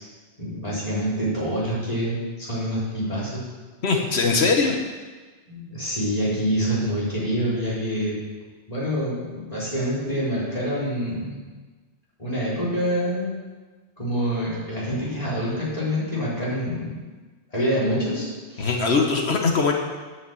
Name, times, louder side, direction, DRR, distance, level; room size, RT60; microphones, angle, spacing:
voice 1, 0.4-3.5 5.5-8.2 8.7-11.4 12.2-13.4 14.0-17.0 17.5-18.8, equal, 35° left, -9 dB, 4.4 m, -26 dB
voice 2, 3.8-4.7 18.6-19.7, left 4 dB, 70° left, 2 dB, 1.4 m, -21 dB
9.6 x 6.6 x 7.7 m, 1.4 s
omnidirectional pair, 1.1 m